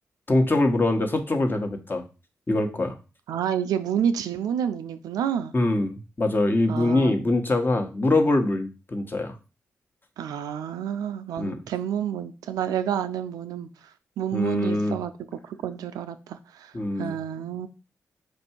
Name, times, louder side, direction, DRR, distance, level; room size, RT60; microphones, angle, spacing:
voice 1, 0.3-2.0 2.5-2.9 5.5-9.3 11.4-11.6 14.3-15.0 16.7-17.1, left 2 dB, 35° left, 5 dB, 1.1 m, -23 dB
voice 2, 3.3-5.5 6.7-7.2 10.2-15.1 15.4-16.7 17.0-17.7, right 9 dB, 85° right, 10 dB, 0.4 m, -29 dB
4.6 x 2.6 x 4.4 m, 0.31 s
supercardioid pair, 45°, 6 cm